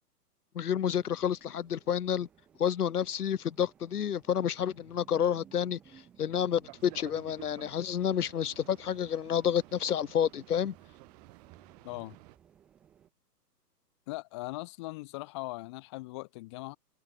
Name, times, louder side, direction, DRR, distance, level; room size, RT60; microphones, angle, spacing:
voice 1, 0.5-2.3 2.6-5.8 6.2-10.7, left 9 dB, 65° left, 1.2 m, -29 dB
sound 1, 0.6-13.1, right 9 dB, ahead, 0.7 m, -61 dB
Boat Water vehicle, 6.6-12.4, right 24 dB, 25° right, 6.5 m, -54 dB
voice 2, 11.8-12.2 14.1-16.8, left 23 dB, 15° left, 1.6 m, -40 dB
hypercardioid pair, 165°, 49 cm